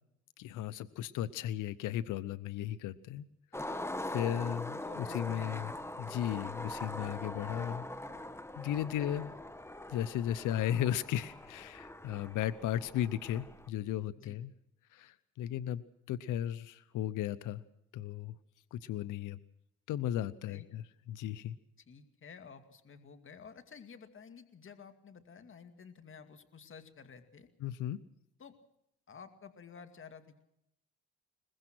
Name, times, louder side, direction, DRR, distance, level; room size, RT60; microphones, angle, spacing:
voice 1, 0.4-3.2 3.6-3.8 4.1-5.7 6.0-7.9 8.6-9.3 9.9-14.5 14.9-17.6 17.9-18.3 18.7-19.4 19.9-20.8 21.1-21.6 27.6-28.0, left 11 dB, 85° left, 14 dB, 0.8 m, -35 dB
Skateboard, 3.5-13.7, left 1 dB, 10° left, 1.6 m, -42 dB
voice 2, 4.8-5.8 9.0-9.1 14.2-14.4 20.4-20.7 21.9-27.5 28.4-28.5 29.1-30.4, left 6 dB, 40° left, 8 dB, 2.3 m, -52 dB
22.5 x 21.0 x 6.2 m, 0.78 s
cardioid pair, 90°, 30 cm